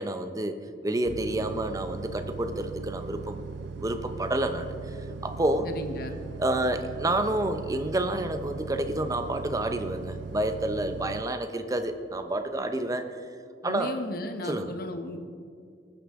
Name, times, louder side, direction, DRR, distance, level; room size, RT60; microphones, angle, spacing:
voice 1, 0.0-3.4 3.8-4.7 5.2-5.7 6.4-13.0 13.6-13.9 14.4-14.7, right 1 dB, 20° right, 8 dB, 0.7 m, -29 dB
sound 1, 1.0-11.2, right 4 dB, 85° right, 0.4 m, -39 dB
voice 2, 5.6-6.1 13.6-15.2, left 1 dB, 60° left, 7 dB, 1.0 m, -35 dB
19.0 x 9.5 x 3.6 m, 2.2 s
head